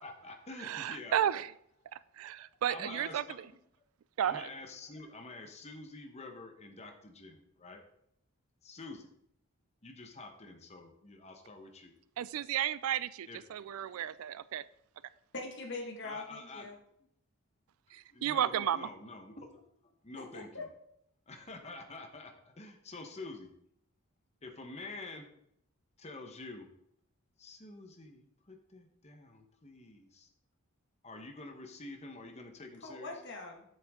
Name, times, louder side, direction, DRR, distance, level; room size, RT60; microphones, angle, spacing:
voice 1, 0.0-1.2 2.7-3.4 4.2-7.8 8.6-9.1 9.8-11.9 13.3-13.4 16.0-16.7 18.1-19.6 20.0-20.7 21.3-23.5 24.4-25.3 26.0-26.7 27.4-30.3 31.0-33.1, left 2 dB, 30° left, 4 dB, 1.0 m, -47 dB
voice 2, 0.6-1.5 1.9-3.5 4.2-4.5 12.2-14.6 17.9-18.9, right 10 dB, 75° right, 18 dB, 0.3 m, -33 dB
voice 3, 15.3-16.7 20.2-20.6 32.8-33.6, left 3 dB, 55° left, 1 dB, 1.8 m, -42 dB
7.7 x 7.5 x 3.6 m, 0.73 s
head